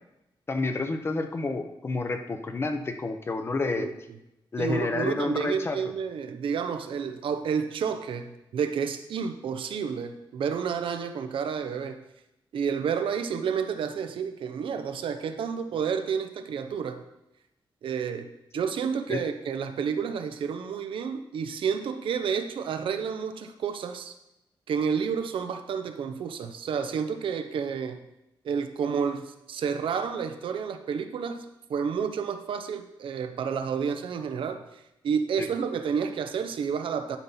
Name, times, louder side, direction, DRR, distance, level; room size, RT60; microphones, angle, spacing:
voice 1, 0.5-3.9 4.5-5.8 19.1-19.2 35.4-35.5, left 3 dB, 30° left, 7 dB, 0.7 m, -29 dB
voice 2, 3.6-3.9 4.6-12.0 12.5-17.0 17.8-24.1 24.7-28.0 28.4-31.4 31.7-37.2, right 6 dB, 80° right, 8 dB, 0.7 m, -30 dB
11.0 x 4.2 x 5.6 m, 0.89 s
wide cardioid pair, 155°, 9 cm